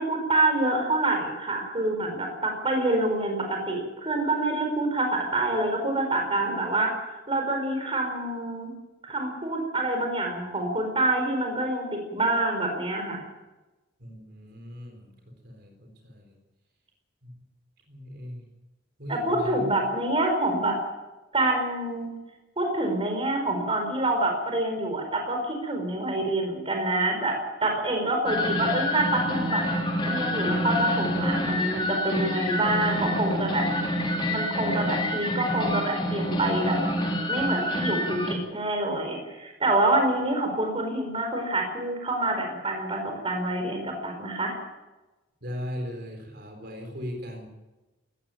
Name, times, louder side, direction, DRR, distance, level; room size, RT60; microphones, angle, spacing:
voice 1, 0.0-6.9 7.3-8.7 9.0-13.2 19.1-20.8 21.3-22.1 22.6-29.6 30.0-33.7 34.3-36.8 37.3-44.5, right 2 dB, 30° right, 3 dB, 4.6 m, -26 dB
voice 2, 14.0-15.1 15.4-16.3 17.9-18.4 19.0-19.7 45.4-47.5, equal, 55° right, 3 dB, 4.3 m, -38 dB
sound 1, 28.3-38.4, left 1 dB, 25° left, 3.4 m, -27 dB
18.5 x 15.5 x 9.2 m, 1.1 s
head